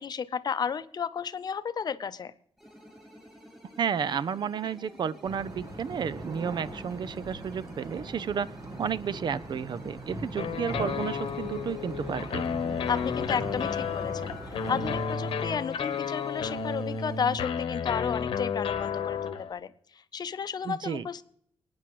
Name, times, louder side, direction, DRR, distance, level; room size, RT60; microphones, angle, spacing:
voice 1, 0.0-2.3 12.9-21.2, left 6 dB, 50° left, 13 dB, 0.6 m, -33 dB
sound 1, 2.6-17.4, equal, 5° right, 6.3 m, -51 dB
voice 2, 3.8-12.4 20.6-21.1, right 7 dB, 55° right, 18 dB, 0.5 m, -32 dB
sound 2, 5.2-15.0, right 2 dB, 40° right, 1.3 m, -40 dB
sound 3, 10.4-19.5, left 6 dB, 80° left, 1.0 m, -32 dB
28.5 x 9.6 x 3.1 m, 0.67 s
wide cardioid pair, 135°, 9 cm